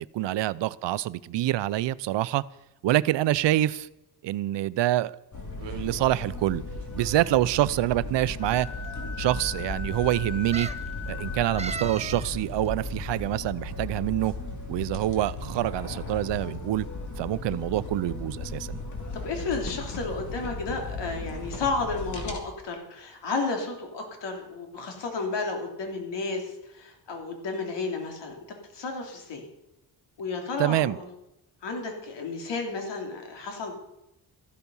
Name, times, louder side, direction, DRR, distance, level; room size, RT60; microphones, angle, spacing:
voice 1, 0.0-2.4 2.8-3.9 4.2-5.2 5.6-6.6 6.9-8.7 9.2-10.7 11.1-14.3 14.7-16.9 17.2-18.8 30.6-31.0, right 14 dB, 90° right, 17 dB, 0.6 m, -26 dB
sound 1, 5.3-22.4, left 2 dB, 45° left, 2.8 m, -36 dB
sound 2, 7.1-7.6 8.5-8.6 8.8-8.9 10.5-10.9 11.6-12.3 12.6-12.7, right 4 dB, 15° right, 0.5 m, -37 dB
Wind instrument woodwind instrument, 8.4-11.9, left 6 dB, 60° left, 3.3 m, -40 dB
voice 2, 19.1-28.3 28.7-29.4 30.2-31.0 31.6-33.7, left 3 dB, 85° left, 3 dB, 3.2 m, -32 dB
14.0 x 12.5 x 5.5 m, 0.88 s
cardioid pair, 120°, 42 cm